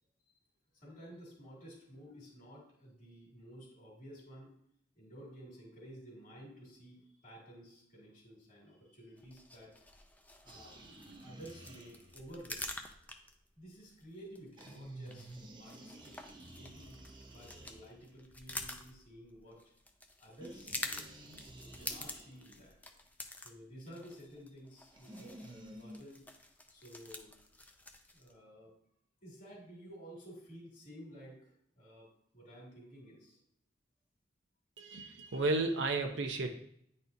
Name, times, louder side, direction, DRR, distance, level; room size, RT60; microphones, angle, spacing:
voice 1, 0.7-4.5 5.0-9.8 10.4-10.8 11.2-12.6 13.6-15.3 15.6-16.1 16.5-19.7 20.2-22.8 23.3-26.2 26.7-27.4 28.1-28.7 29.2-33.4, equal, 45° left, -4 dB, 2.4 m, -53 dB
sound 1, 9.2-28.3, left 2 dB, 10° left, 0.5 m, -48 dB
sound 2, 10.5-12.3 14.6-18.3 20.4-22.7 24.9-26.0, right 1 dB, 25° right, 0.7 m, -52 dB
voice 2, 34.8-36.5, right 2 dB, 80° right, 4 dB, 0.6 m, -33 dB
9.5 x 4.2 x 2.7 m, 0.69 s
head